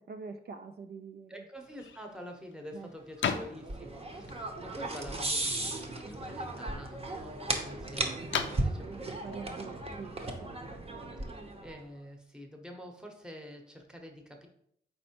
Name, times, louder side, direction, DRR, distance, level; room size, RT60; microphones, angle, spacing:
voice 1, 0.1-1.3 2.7-2.9 8.0-10.5, right 5 dB, 60° right, 6 dB, 0.4 m, -45 dB
voice 2, 1.3-9.1 11.6-14.5, equal, 5° right, 2 dB, 0.8 m, -47 dB
sound 1, 1.6-10.7, left 7 dB, 85° left, 0.4 m, -41 dB
sound 2, 3.2-11.8, right 2 dB, 30° right, 0.7 m, -36 dB
4.3 x 4.2 x 2.8 m, 0.70 s
cardioid pair, 70°, 19 cm